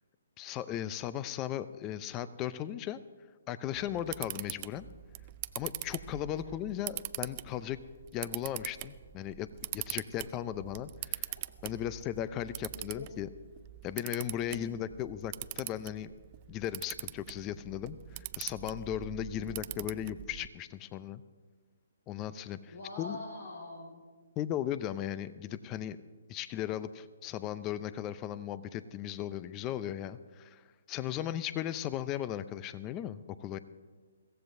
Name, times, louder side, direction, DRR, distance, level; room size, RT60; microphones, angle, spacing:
voice 1, 0.4-3.0 3.5-4.9 5.5-7.8 8.1-9.5 9.7-11.3 11.6-13.3 13.8-16.1 16.5-21.2 22.1-23.2 24.4-26.0 26.3-30.6 30.9-33.6, left 11 dB, 25° left, 15 dB, 0.5 m, -37 dB
Camera, 3.7-20.5, right 17 dB, 35° right, 0.4 m, -43 dB
voice 2, 12.8-13.1 14.5-14.7 19.4-19.6 22.7-24.1, left 2 dB, 70° left, -2 dB, 2.2 m, -44 dB
22.5 x 16.0 x 2.7 m, 1.5 s
hypercardioid pair, 145°, 0 cm